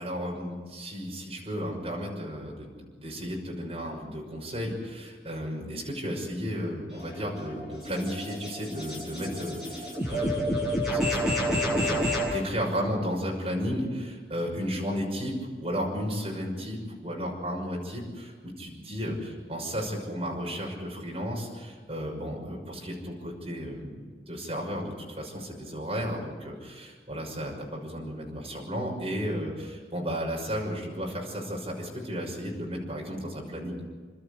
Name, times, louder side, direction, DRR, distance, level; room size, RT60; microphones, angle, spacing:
voice 1, 0.0-2.7 3.0-12.0 12.3-15.3 15.6-33.8, equal, 35° right, -1 dB, 6.1 m, -34 dB
sound 1, 6.9-12.3, equal, 5° right, 7.7 m, -29 dB
29.5 x 13.0 x 8.3 m, 1.5 s
head